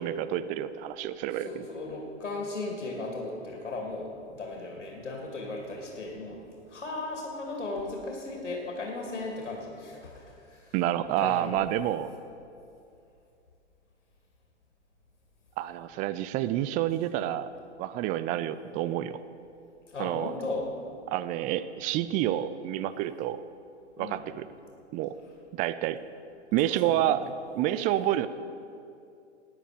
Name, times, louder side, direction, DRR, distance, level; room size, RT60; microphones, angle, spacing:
voice 1, 0.0-1.7 10.7-12.1 15.6-17.5 17.8-19.2 20.0-20.3 21.1-23.4 24.0-24.5 24.9-25.1 25.5-26.0 26.5-27.2 27.5-28.3, right 12 dB, 25° right, 14 dB, 0.4 m, -28 dB
voice 2, 1.3-10.7 11.2-11.5 19.9-20.7 24.0-24.3 26.6-27.1, left 2 dB, 80° left, 0 dB, 2.6 m, -36 dB
17.5 x 10.0 x 5.1 m, 2.6 s
hypercardioid pair, 105°, 35 cm